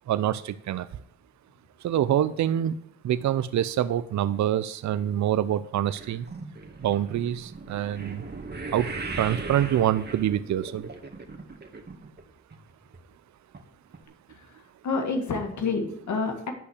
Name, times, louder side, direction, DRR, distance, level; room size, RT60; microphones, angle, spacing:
voice 1, 0.1-0.9 1.8-2.8 3.0-6.2 6.8-8.2 8.7-8.9 9.2-10.9, right 11 dB, 75° right, 14 dB, 0.6 m, -25 dB
sound 1, 5.8-12.2 12.5-13.0 13.5-13.6 13.9-14.0, right 3 dB, 35° right, 2.0 m, -38 dB
voice 2, 14.3-16.5, left 4 dB, 75° left, 4 dB, 2.0 m, -29 dB
10.5 x 5.5 x 8.1 m, 0.66 s
cardioid pair, 55°, 29 cm